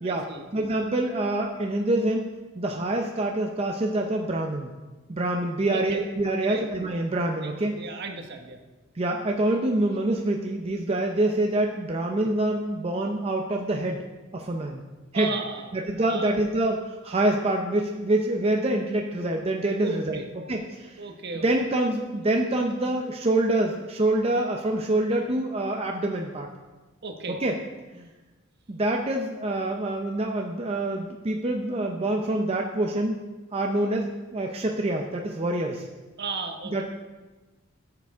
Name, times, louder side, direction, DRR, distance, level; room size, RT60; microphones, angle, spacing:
voice 1, 0.0-0.5 5.7-6.0 6.5-6.7 7.4-8.6 15.1-16.3 19.8-20.3 21.0-21.5 27.0-27.4 36.2-36.8, right 4 dB, 55° right, 4 dB, 1.0 m, -35 dB
voice 2, 0.5-2.3 2.6-4.7 5.1-7.7 9.0-14.0 14.3-14.8 15.1-15.3 15.7-20.2 20.5-21.0 21.4-26.5 27.4-27.6 27.9-28.1 28.7-33.2 33.5-35.9 36.7-36.8, right 1 dB, 30° right, 1 dB, 0.6 m, -26 dB
13.5 x 6.8 x 3.6 m, 1.2 s
head